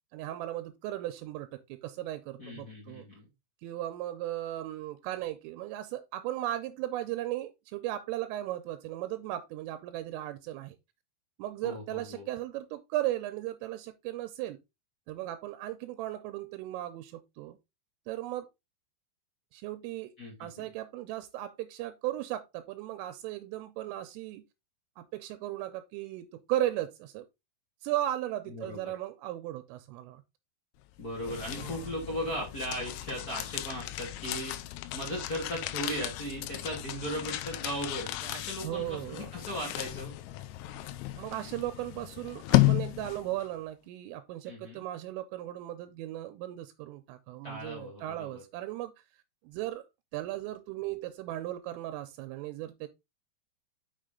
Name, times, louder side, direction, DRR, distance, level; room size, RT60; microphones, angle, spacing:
voice 1, 0.1-3.1 3.6-10.8 11.4-14.6 15.1-17.6 18.1-18.5 19.5-20.1 20.4-24.4 25.0-27.3 27.8-30.2 31.6-31.9 38.6-39.3 41.2-48.9 49.4-49.8 50.1-52.9, right 14 dB, 85° right, 3.2 m, -36 dB
voice 2, 2.4-3.3 11.6-12.3 20.2-20.7 28.5-28.8 31.0-34.5 34.9-40.1 44.4-44.8 47.4-48.4, equal, 45° left, 1.1 m, -37 dB
sound 1, 30.9-43.5, left 17 dB, 80° left, 3.2 m, -33 dB
6.5 x 6.5 x 3.7 m
omnidirectional pair, 5.9 m